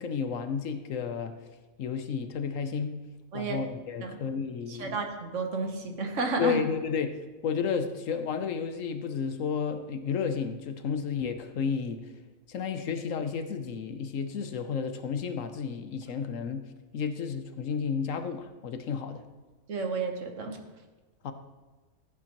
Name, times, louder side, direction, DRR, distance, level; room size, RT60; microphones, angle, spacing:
voice 1, 0.0-1.3 1.8-2.9 3.3-5.0 6.4-7.2 7.4-12.0 12.5-16.6 16.9-19.2 21.2-21.3, left 6 dB, 65° left, 8 dB, 1.0 m, -32 dB
voice 2, 4.7-6.6 19.7-20.6, right 3 dB, 60° right, 4 dB, 1.4 m, -31 dB
15.0 x 8.6 x 3.0 m, 1.2 s
omnidirectional pair, 1.5 m